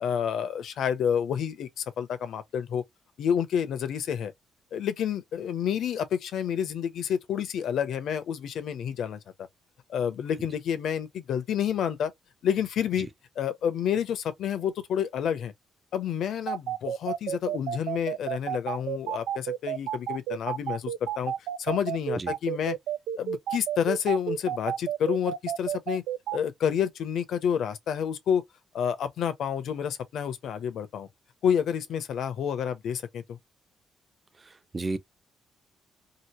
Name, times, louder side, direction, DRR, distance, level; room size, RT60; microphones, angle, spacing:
voice 1, 0.0-2.8 3.2-4.3 4.7-9.2 9.9-12.1 12.4-13.1 13.4-15.5 15.9-21.3 21.6-22.8 23.2-26.0 26.3-28.4 28.7-31.1 31.4-33.4, left 8 dB, 70° left, 0.6 m, -29 dB
sound 1, 16.5-26.4, right 10 dB, 85° right, 0.3 m, -30 dB
voice 2, 34.4-35.0, right 3 dB, 30° right, 0.5 m, -32 dB
2.9 x 2.6 x 2.9 m
cardioid pair, 90°, 0 cm